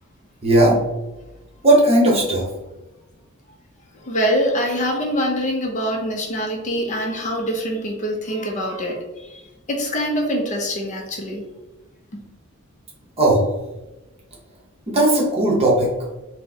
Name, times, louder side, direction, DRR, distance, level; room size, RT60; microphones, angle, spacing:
voice 1, 0.4-0.8 1.6-2.4 13.2-13.5 14.9-15.9, right 1 dB, 30° right, -3 dB, 1.0 m, -16 dB
voice 2, 4.0-9.4 9.7-11.4, equal, 35° left, 1 dB, 0.5 m, -24 dB
4.3 x 2.1 x 2.7 m, 1.0 s
head